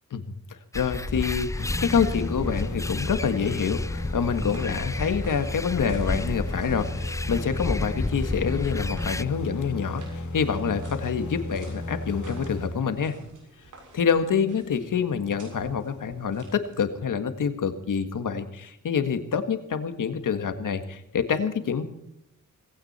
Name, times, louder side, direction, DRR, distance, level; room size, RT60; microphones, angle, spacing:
voice 1, 0.5-13.2 13.9-21.8, left 6 dB, 85° left, 9 dB, 1.8 m, -27 dB
sound 1, 0.7-9.2, left 2 dB, 10° left, 0.5 m, -32 dB
sound 2, 1.6-13.3, left 1 dB, 70° left, 3.6 m, -34 dB
sound 3, 3.7-17.0, right 2 dB, 75° right, 7.1 m, -51 dB
19.0 x 16.5 x 4.3 m, 0.77 s
wide cardioid pair, 95°, 31 cm